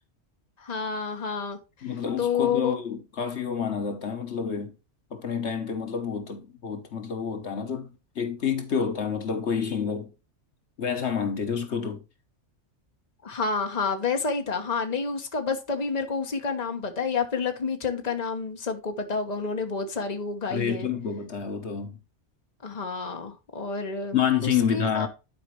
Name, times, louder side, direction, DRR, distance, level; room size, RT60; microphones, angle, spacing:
voice 1, 0.6-1.6 2.2-2.8 13.2-20.9 22.6-24.2 24.4-25.1, left 5 dB, 35° left, 1.3 m, -29 dB
voice 2, 1.8-4.7 5.1-7.9 8.1-10.1 10.8-12.0 20.5-22.0 24.1-25.1, left 7 dB, 70° left, 1.4 m, -28 dB
11.5 x 5.0 x 3.1 m
omnidirectional pair, 1.2 m